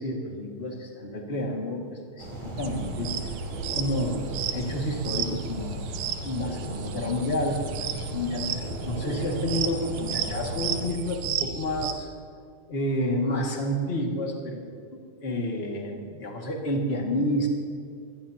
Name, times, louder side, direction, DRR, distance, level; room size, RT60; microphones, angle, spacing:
voice 1, 0.0-3.1 3.7-5.8 6.2-12.1 12.7-14.8 15.2-17.5, left 1 dB, 25° left, -1 dB, 1.3 m, -30 dB
sound 1, 2.2-10.9, right 1 dB, 45° right, 4.7 m, -37 dB
sound 2, 2.6-11.9, right 6 dB, 75° right, 1.9 m, -33 dB
23.0 x 18.0 x 2.9 m, 2.2 s
omnidirectional pair, 4.5 m